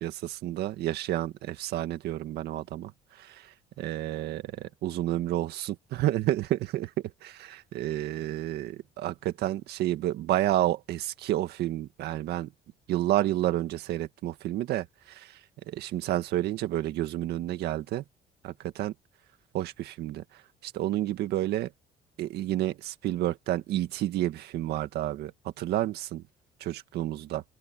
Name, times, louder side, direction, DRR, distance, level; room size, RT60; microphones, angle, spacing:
voice 1, 0.0-2.9 3.2-3.5 3.8-6.9 7.2-12.5 12.9-15.4 15.7-18.0 18.4-18.9 19.5-20.2 20.6-21.7 22.2-25.3 25.6-26.2 26.6-27.4, right 14 dB, 75° right, 1.9 m, -30 dB
open air
cardioid pair, 110°, 17 cm